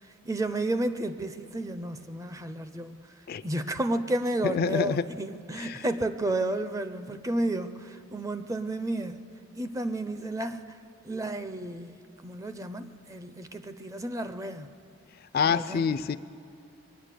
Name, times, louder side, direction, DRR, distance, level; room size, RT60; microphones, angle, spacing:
voice 1, 0.2-3.0 3.4-9.2 9.6-10.6 11.0-14.7 15.5-15.9, right 1 dB, 15° right, 10 dB, 0.5 m, -32 dB
voice 2, 4.4-5.0 5.6-5.8 15.3-16.2, left 6 dB, 45° left, 14 dB, 0.3 m, -27 dB
22.5 x 9.5 x 6.7 m, 2.5 s
head